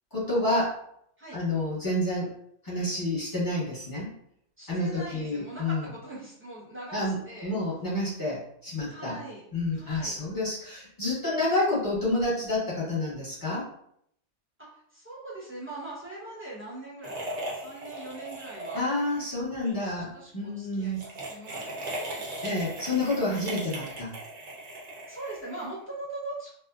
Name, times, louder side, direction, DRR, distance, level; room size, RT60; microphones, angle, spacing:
voice 1, 0.1-0.7 1.3-2.3 2.6-4.1 4.7-5.8 6.9-9.2 9.5-13.6 18.7-21.0 22.4-24.1, left 1 dB, 20° left, -7 dB, 0.9 m, -29 dB
voice 2, 4.6-7.5 8.9-9.4 9.7-10.2 14.6-18.8 19.8-21.6 21.9-22.3 25.1-26.5, right 2 dB, 15° right, -7 dB, 0.7 m, -41 dB
sound 1, 17.0-19.2 19.5-19.7 20.8-25.8, right 1 dB, 50° right, 0.5 m, -38 dB
2.5 x 2.1 x 2.3 m, 0.70 s
omnidirectional pair, 1.2 m